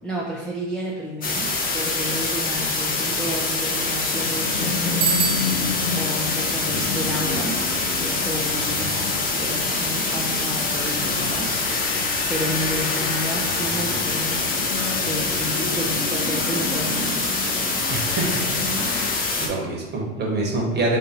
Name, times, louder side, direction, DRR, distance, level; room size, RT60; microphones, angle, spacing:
voice 1, 0.0-7.6 7.9-14.4 15.0-17.3, equal, ahead, -6 dB, 0.5 m, -31 dB
sound 1, 1.2-19.5, left 3 dB, 25° left, 0.8 m, -25 dB
sound 2, 4.1-19.2, left 5 dB, 70° left, 0.6 m, -31 dB
Bicycle bell, 5.0-6.0, right 6 dB, 75° right, 0.6 m, -25 dB
voice 2, 17.9-18.8 19.4-21.0, right 2 dB, 30° right, -1 dB, 1.2 m, -25 dB
3.6 x 2.8 x 3.9 m, 1.2 s
hypercardioid pair, 90°, 36 cm